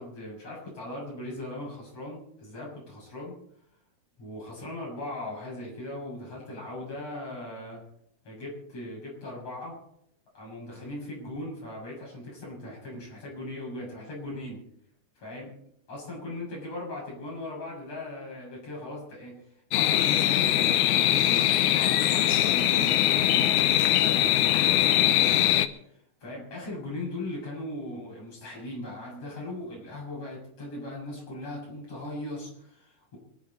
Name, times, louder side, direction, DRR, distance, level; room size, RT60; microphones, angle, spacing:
voice 1, 0.0-3.4 4.2-7.8 8.2-9.8 10.3-14.6 15.2-15.5 15.9-33.2, left 1 dB, 55° left, -3 dB, 8.2 m, -39 dB
sound 1, 19.7-25.7, left 12 dB, 85° left, 2.3 m, -22 dB
26.0 x 10.5 x 4.3 m, 0.73 s
omnidirectional pair, 3.4 m